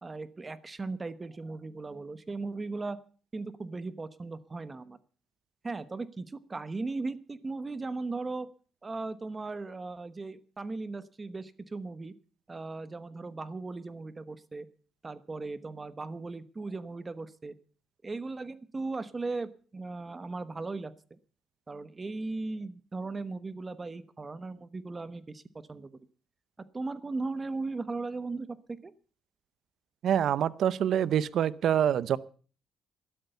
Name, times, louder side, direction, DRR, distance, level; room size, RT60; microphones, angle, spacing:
voice 1, 0.0-3.0 3.3-5.0 5.6-8.5 8.8-12.1 12.5-14.7 15.0-17.5 18.0-21.2 21.7-25.4 25.7-25.9 26.7-28.9, right 3 dB, 25° right, 13 dB, 1.1 m, -37 dB
voice 2, 30.0-32.2, right 9 dB, 70° right, 18 dB, 0.7 m, -26 dB
12.5 x 12.0 x 6.8 m, 0.40 s
cardioid pair, 90°, 0 cm